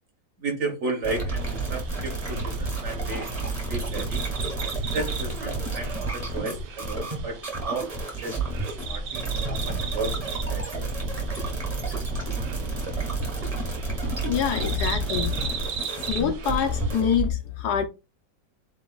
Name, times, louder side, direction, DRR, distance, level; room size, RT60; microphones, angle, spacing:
voice 1, 0.4-4.2 4.8-7.4 7.6-10.1 10.5-10.9, right 3 dB, 45° right, 1.4 m, -34 dB
sound 1, 1.0-17.3, right 3 dB, 20° right, 1.3 m, -30 dB
sound 2, 1.3-16.9, right 6 dB, 70° right, 1.5 m, -39 dB
voice 2, 14.2-15.5 16.1-17.9, left 8 dB, 70° left, 1.1 m, -25 dB
8.0 x 2.8 x 2.3 m
omnidirectional pair, 2.0 m